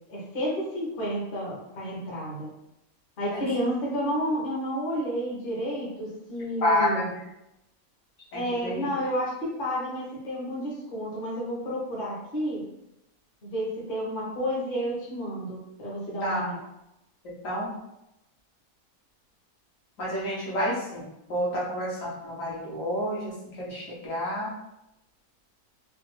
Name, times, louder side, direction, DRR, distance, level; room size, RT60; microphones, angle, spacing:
voice 1, 0.1-2.5 3.2-7.1 8.3-12.6 13.4-16.6, equal, 40° left, -5 dB, 1.0 m, -31 dB
voice 2, 6.6-7.2 8.3-8.8 16.2-16.5 17.2-17.7 20.0-24.5, left 1 dB, 65° left, -6 dB, 1.4 m, -29 dB
3.3 x 2.2 x 3.2 m, 0.88 s
omnidirectional pair, 1.5 m